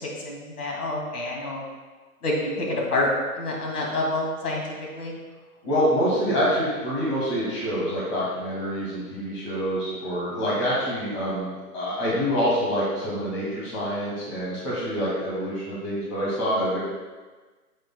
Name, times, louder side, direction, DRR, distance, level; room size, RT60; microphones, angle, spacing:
voice 1, 0.0-1.6 2.2-3.1 3.4-4.6 4.9-5.1, left 2 dB, 75° left, -2 dB, 2.3 m, -27 dB
voice 2, 5.6-16.8, equal, 20° left, -8 dB, 1.9 m, -26 dB
8.3 x 8.1 x 2.2 m, 1.3 s
hypercardioid pair, 170°, 47 cm